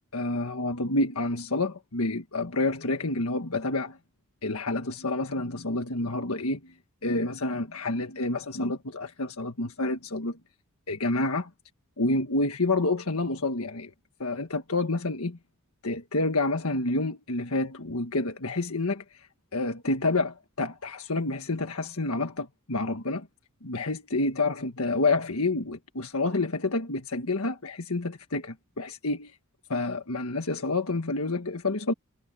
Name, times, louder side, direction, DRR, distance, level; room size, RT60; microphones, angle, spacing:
voice 1, 0.1-4.0 4.4-6.6 7.0-10.4 10.9-11.5 12.0-13.9 14.2-15.4 15.8-19.0 19.5-23.3 23.6-29.3 29.7-31.9, left 2 dB, 70° left, 1.6 m, -28 dB
head